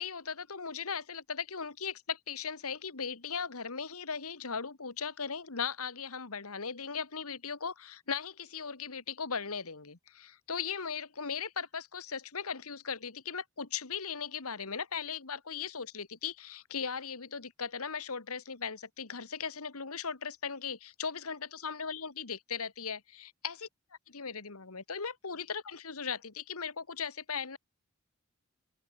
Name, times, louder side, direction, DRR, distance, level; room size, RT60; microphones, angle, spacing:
voice 1, 0.0-23.7 24.1-27.6, left 6 dB, 85° left, 1.7 m, -38 dB
open air
head